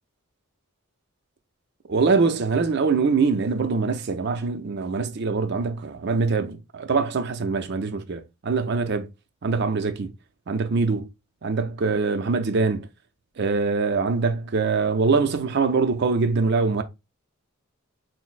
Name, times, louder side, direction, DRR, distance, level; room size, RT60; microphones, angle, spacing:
voice 1, 1.9-9.1 9.4-10.1 10.5-11.1 11.4-12.9 13.4-16.8, right 4 dB, 50° right, 0.5 m, -23 dB
5.8 x 2.0 x 2.4 m
head